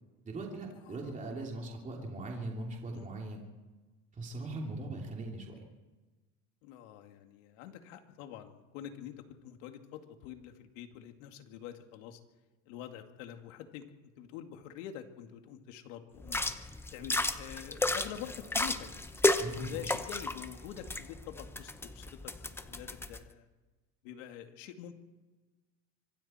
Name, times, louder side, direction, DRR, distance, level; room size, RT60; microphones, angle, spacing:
voice 1, 0.2-3.4 4.1-5.6 19.4-19.8, right 2 dB, 20° right, 0 dB, 2.9 m, -40 dB
voice 2, 0.8-1.1 2.9-3.1 6.6-9.1 9.4-12.2 12.7-13.8 14.2-16.4 16.9-18.9 19.5-23.5 24.0-24.9, left 10 dB, 90° left, 5 dB, 2.4 m, -46 dB
sound 1, 16.2-23.2, left 2 dB, 5° left, 0.9 m, -33 dB
25.5 x 23.5 x 4.4 m, 1.2 s
cardioid pair, 145°, 36 cm